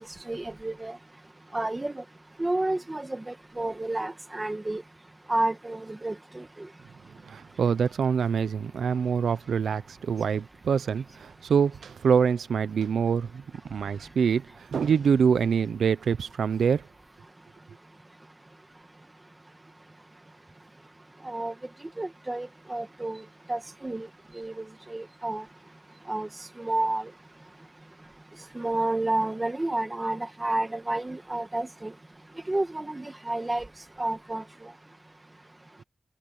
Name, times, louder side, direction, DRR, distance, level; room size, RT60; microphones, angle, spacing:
voice 1, 0.3-1.0 1.5-2.0 2.4-4.8 5.3-6.7 21.2-21.5 22.0-23.2 23.5-24.1 24.3-25.4 26.1-26.3 26.6-27.1 28.5-31.9 32.5-33.6 34.0-34.7, right 2 dB, 15° right, 1.6 m, -30 dB
voice 2, 7.3-13.4 13.7-14.5 14.7-16.8, right 6 dB, 80° right, 0.7 m, -25 dB
wide cardioid pair, 170°, 0 cm